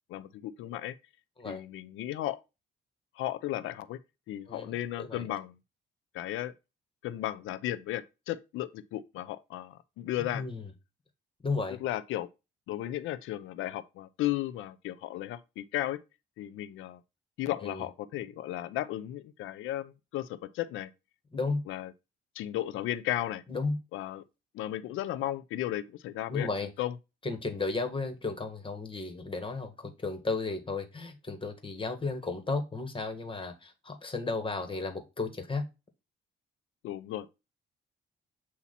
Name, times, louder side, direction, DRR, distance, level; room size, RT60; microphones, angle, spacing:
voice 1, 0.1-0.9 1.4-2.4 3.2-4.0 4.3-5.6 6.1-6.5 7.0-10.4 11.8-12.3 12.7-16.0 16.4-17.0 17.4-20.9 21.7-21.9 22.3-23.4 23.9-24.2 24.5-26.9 36.8-37.3, left 13 dB, 90° left, 0.6 m, -35 dB
voice 2, 4.5-5.2 10.3-10.6 11.4-11.8 17.6-17.9 21.3-21.6 23.5-23.8 26.3-26.7 27.2-35.7, left 3 dB, 25° left, 1.7 m, -34 dB
8.4 x 2.9 x 4.2 m
cardioid pair, 90°, 20 cm